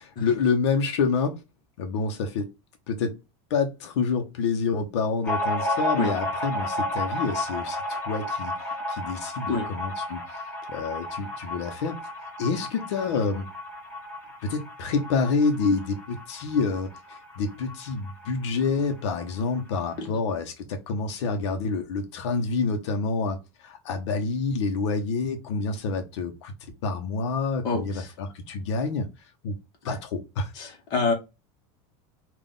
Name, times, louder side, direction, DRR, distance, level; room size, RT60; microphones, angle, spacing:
voice 1, 0.0-1.4 1.8-2.5 2.9-3.2 3.5-10.2 10.7-12.0 12.4-13.5 14.4-26.5 26.8-29.1 29.4-29.5 29.8-30.5, left 4 dB, 80° left, 0.8 m, -28 dB
sound 1, 5.2-18.4 18.7-18.8 19.0-19.8, left 1 dB, 10° left, 0.7 m, -32 dB
voice 2, 27.6-28.1 29.8-30.0 30.5-31.1, left 3 dB, 30° left, 1.1 m, -27 dB
3.7 x 2.5 x 3.7 m
supercardioid pair, 175°, 15 cm